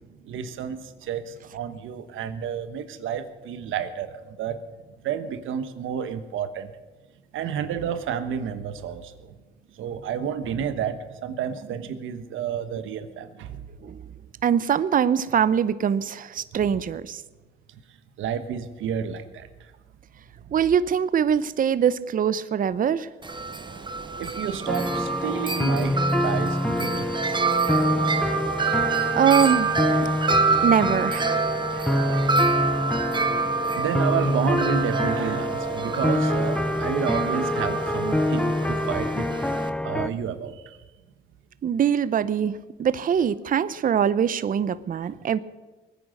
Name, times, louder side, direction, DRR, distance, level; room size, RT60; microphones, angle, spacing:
voice 1, 0.2-4.6 5.0-6.7 7.3-9.3 9.8-13.6 16.5-16.6 18.2-19.7 24.2-27.0 28.1-28.4 29.9-30.1 30.4-30.5 31.7-33.0 33.6-39.3 39.8-40.8, right 8 dB, 80° right, 10 dB, 1.2 m, -31 dB
voice 2, 14.4-17.2 20.5-23.1 29.1-29.7 30.6-31.4 41.6-45.4, right 8 dB, 45° right, 16 dB, 0.6 m, -23 dB
Wind chime, 23.2-39.7, right 4 dB, 25° right, 1.2 m, -27 dB
sound 1, 24.7-40.1, left 1 dB, 5° left, 0.5 m, -26 dB
20.5 x 9.5 x 6.5 m, 1.2 s
cardioid pair, 90°, 20 cm